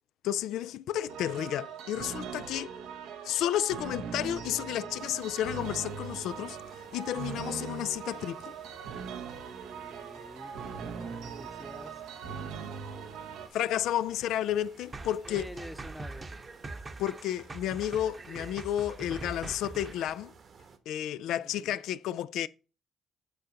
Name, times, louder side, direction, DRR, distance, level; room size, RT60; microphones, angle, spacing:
voice 1, 0.2-2.7 3.2-6.6 6.9-8.5 13.5-15.5 17.0-20.3 20.9-22.5, left 11 dB, 85° left, 0.3 m, -32 dB
sound 1, 1.1-13.5, right 6 dB, 90° right, 0.8 m, -40 dB
sound 2, 5.0-20.8, right 5 dB, 55° right, 1.1 m, -56 dB
voice 2, 9.5-12.0 15.2-16.4 21.4-21.8, equal, 5° left, 0.8 m, -48 dB
sound 3, 14.9-20.1, right 3 dB, 30° right, 0.8 m, -43 dB
8.2 x 3.8 x 5.1 m
cardioid pair, 90°, 0 cm